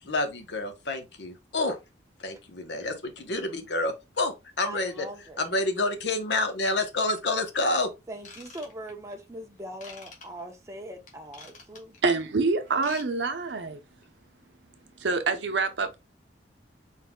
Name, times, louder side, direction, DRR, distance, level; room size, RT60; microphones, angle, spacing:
voice 1, 0.0-1.8 2.2-5.1 5.4-7.9, left 2 dB, 75° left, 1.0 m, -28 dB
voice 2, 4.6-5.4 8.1-12.0, right 1 dB, 15° right, 0.9 m, -41 dB
Ratchet pawl / Tools, 8.2-9.1 9.8-10.3 11.1-12.0 12.7-13.1 13.3-13.5 14.0-14.1, left 4 dB, 40° left, 1.5 m, -46 dB
voice 3, 12.0-13.8 15.0-16.0, right 4 dB, 80° right, 0.7 m, -26 dB
4.4 x 4.1 x 2.2 m
head